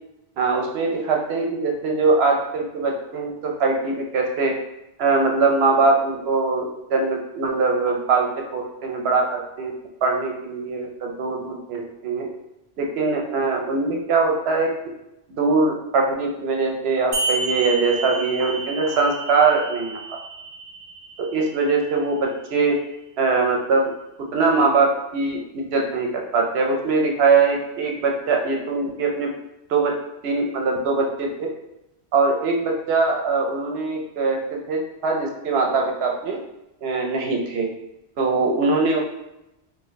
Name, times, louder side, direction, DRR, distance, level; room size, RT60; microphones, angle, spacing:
voice 1, 0.4-4.5 5.0-9.7 10.0-12.3 12.8-14.7 15.3-20.0 21.2-22.7 23.2-23.9 24.3-29.3 29.7-29.9 30.2-31.5 32.1-36.4 36.8-37.6 38.2-39.0, right 4 dB, 70° right, 1 dB, 0.8 m, -22 dB
sound 1, 17.1-22.1, right 2 dB, 50° right, 0.4 m, -31 dB
2.6 x 2.1 x 3.8 m, 0.92 s
omnidirectional pair, 1.1 m